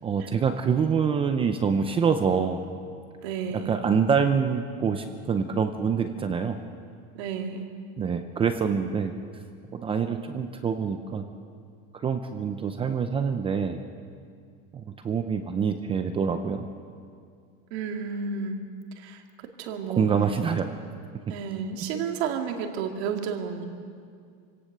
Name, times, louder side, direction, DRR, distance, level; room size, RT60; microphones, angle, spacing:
voice 1, 0.0-2.6 3.7-6.6 8.0-9.1 9.7-11.3 12.0-13.8 14.7-16.7 20.0-20.7, right 6 dB, 15° right, 7 dB, 0.6 m, -25 dB
voice 2, 3.2-3.8 7.1-7.7 17.7-18.6 19.0-19.2 19.6-20.1 20.7-20.9 21.3-23.6, right 6 dB, 80° right, 4 dB, 2.3 m, -32 dB
26.0 x 17.5 x 6.7 m, 2.2 s
cardioid pair, 170°, 32 cm